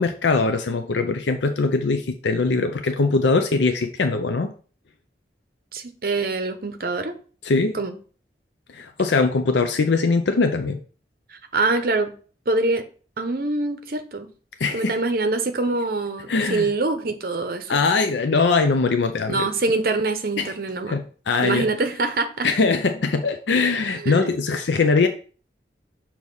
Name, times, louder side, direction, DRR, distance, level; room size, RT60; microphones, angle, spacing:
voice 1, 0.0-4.5 7.4-7.8 8.7-10.8 14.6-15.0 16.3-16.7 17.7-19.4 20.4-20.5 20.9-21.7 22.4-25.1, left 4 dB, 85° left, 7 dB, 0.5 m, -21 dB
voice 2, 5.7-7.2 7.7-7.9 11.3-12.1 12.5-12.9 13.2-14.3 14.7-17.8 19.3-21.0 21.4-22.5 24.0-24.4, right 3 dB, 55° right, 8 dB, 0.8 m, -24 dB
6.3 x 3.0 x 5.4 m, 0.40 s
head